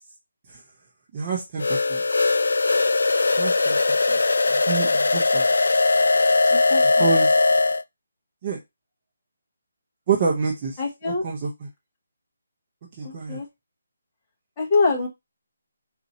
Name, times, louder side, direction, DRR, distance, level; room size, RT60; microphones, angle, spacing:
voice 1, 1.1-2.0 3.3-3.8 4.1-4.2 4.5-5.5 7.0-7.4 8.4-8.6 10.1-10.8 11.1-11.7 13.0-13.4, right 6 dB, 20° right, -2 dB, 0.7 m, -27 dB
sound 1, 1.6-7.8, left 3 dB, 85° left, 0.3 m, -20 dB
voice 2, 6.5-7.1 10.8-11.2 13.0-13.5 14.6-15.1, left 4 dB, 15° left, -2 dB, 1.0 m, -24 dB
4.1 x 2.7 x 4.1 m, 0.20 s
hypercardioid pair, 175°, 0 cm